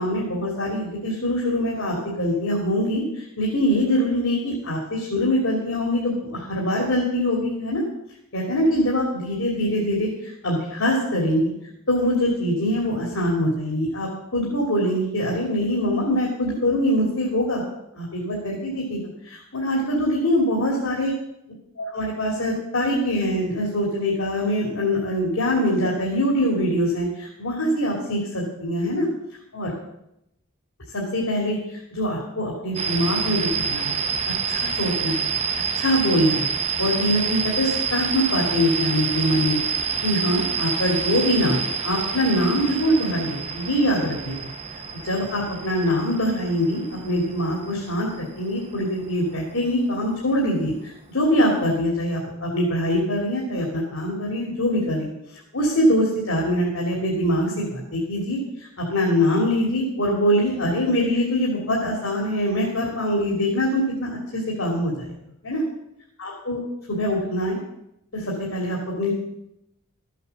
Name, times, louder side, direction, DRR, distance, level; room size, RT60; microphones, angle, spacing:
voice 1, 0.0-7.8 8.3-11.5 11.9-17.6 17.9-21.1 21.8-29.1 29.5-29.7 30.9-34.0 34.5-35.3 35.8-39.6 40.0-44.5 45.0-55.1 55.5-64.9 65.4-65.6 66.2-66.6 66.9-67.6 68.1-69.1, equal, 70° left, -2 dB, 3.0 m, -23 dB
sound 1, 32.7-49.4, right 6 dB, 30° right, 0.9 m, -28 dB
13.5 x 8.3 x 7.2 m, 0.83 s
head